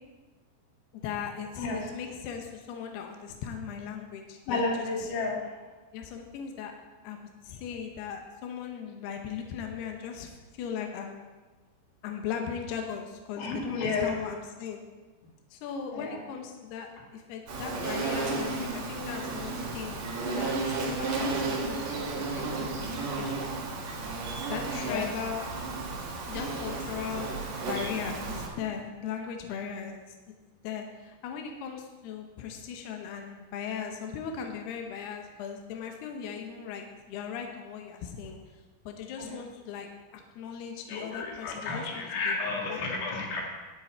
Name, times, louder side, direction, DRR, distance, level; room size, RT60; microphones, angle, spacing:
voice 1, 1.0-5.1 5.9-6.7 7.0-7.2 7.4-11.3 12.0-14.8 15.5-20.1 20.3-22.3 22.5-23.5 24.5-25.5 26.3-30.2 30.6-38.4 38.9-42.4 42.7-42.8, left 7 dB, 85° left, 3 dB, 2.3 m, -38 dB
voice 2, 4.5-5.4 13.4-14.1 15.9-16.2 21.1-21.2 24.9-25.1 39.2-39.3 40.9-43.4, left 3 dB, 65° left, -1 dB, 3.4 m, -31 dB
Insect, 17.5-28.5, right 3 dB, 75° right, 1.5 m, -33 dB
12.0 x 8.7 x 4.4 m, 1.2 s
omnidirectional pair, 6.0 m